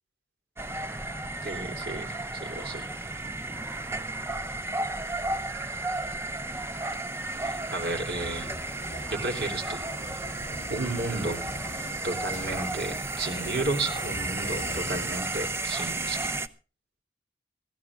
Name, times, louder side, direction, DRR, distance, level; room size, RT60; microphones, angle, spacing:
sound 1, 0.6-16.5, right 2 dB, 15° right, 0.7 m, -33 dB
voice 1, 1.4-2.9 7.3-8.5 9.1-9.8 10.7-11.5 12.0-16.2, right 2 dB, 70° right, 4 dB, 3.3 m, -33 dB
Idling, 6.1-15.7, left 1 dB, 10° left, 6.5 m, -54 dB
sound 2, 7.8-15.7, left 1 dB, 45° left, 8.0 m, -43 dB
24.0 x 16.0 x 2.4 m, 0.35 s
head